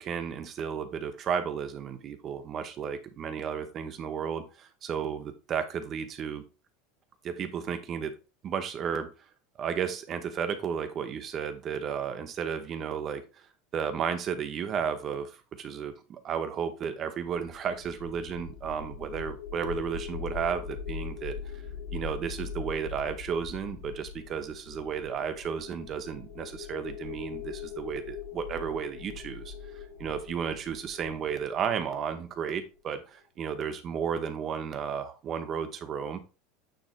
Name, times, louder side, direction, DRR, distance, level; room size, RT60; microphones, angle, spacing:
voice 1, 0.0-6.4 7.2-8.1 8.4-9.1 9.6-13.2 13.7-21.5 21.9-36.2, right 7 dB, 25° right, 9 dB, 0.9 m, -33 dB
sound 1, 17.3-32.4, left 6 dB, 85° left, 2.2 m, -41 dB
9.2 x 3.1 x 4.4 m, 0.31 s
supercardioid pair, 175°, 0 cm